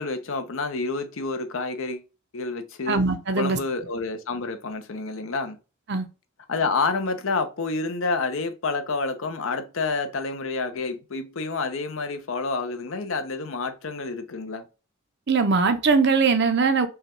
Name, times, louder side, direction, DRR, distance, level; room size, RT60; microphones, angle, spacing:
voice 1, 0.0-2.0 2.3-3.0 3.3-5.6 6.5-14.6, left 3 dB, 65° left, 0.7 m, -28 dB
voice 2, 2.9-3.6 5.9-6.1 15.3-16.9, right 4 dB, 55° right, 0.7 m, -21 dB
5.5 x 2.3 x 2.9 m
head